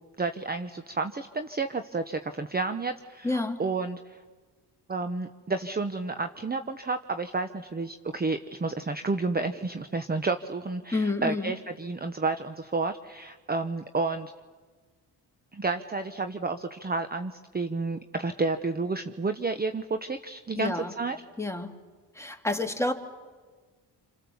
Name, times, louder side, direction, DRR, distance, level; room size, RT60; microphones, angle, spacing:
voice 1, 0.2-4.2 4.9-14.3 15.5-21.2, right 3 dB, 20° right, 1.0 m, -31 dB
voice 2, 3.2-3.6 10.9-11.5 20.6-20.9 21.4-21.7 22.2-22.9, left 2 dB, 5° left, 2.4 m, -29 dB
28.0 x 26.5 x 7.2 m
cardioid pair, 75°, 43 cm